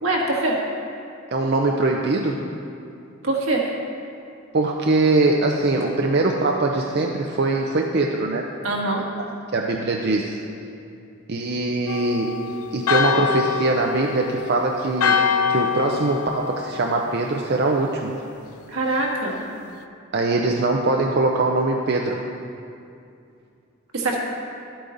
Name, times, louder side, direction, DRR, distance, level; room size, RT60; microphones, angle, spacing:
voice 1, 0.0-0.5 3.2-3.6 8.6-9.0 18.7-19.3 23.9-24.2, right 2 dB, 80° right, -1 dB, 1.6 m, -23 dB
voice 2, 1.3-2.4 4.5-8.4 9.2-9.3 9.5-10.4 11.3-12.3 12.7-15.2 15.5-18.2 20.1-22.2, right 2 dB, 50° right, 1 dB, 0.5 m, -22 dB
Church bell, 11.9-17.6, left 6 dB, 90° left, 0.5 m, -25 dB
11.5 x 8.7 x 3.9 m, 2.5 s
head